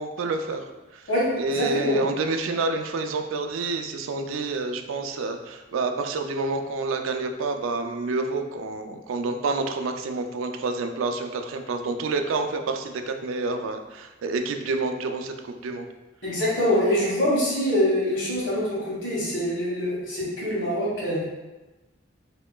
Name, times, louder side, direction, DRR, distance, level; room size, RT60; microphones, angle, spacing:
voice 1, 0.0-1.1 1.4-15.9, right 3 dB, 80° right, 6 dB, 0.4 m, -28 dB
voice 2, 1.1-2.0 16.2-21.2, left 1 dB, 70° left, -5 dB, 1.4 m, -24 dB
4.4 x 2.8 x 2.3 m, 1.1 s
head